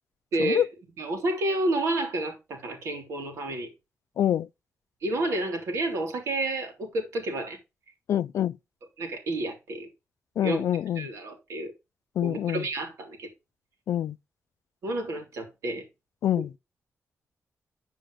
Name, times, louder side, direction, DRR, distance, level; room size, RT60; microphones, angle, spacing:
voice 1, 0.3-0.6 1.0-3.7 5.0-7.6 9.0-9.9 10.4-10.6 11.0-11.7 12.2-13.3 14.8-15.8 16.4-16.6, right 2 dB, 80° right, 3.6 m, -30 dB
voice 2, 4.2-4.5 8.1-8.6 10.4-11.1 12.2-12.7 13.9-14.2 16.2-16.5, left 10 dB, 75° left, 0.4 m, -26 dB
10.5 x 5.0 x 4.9 m
wide cardioid pair, 180°, 5 cm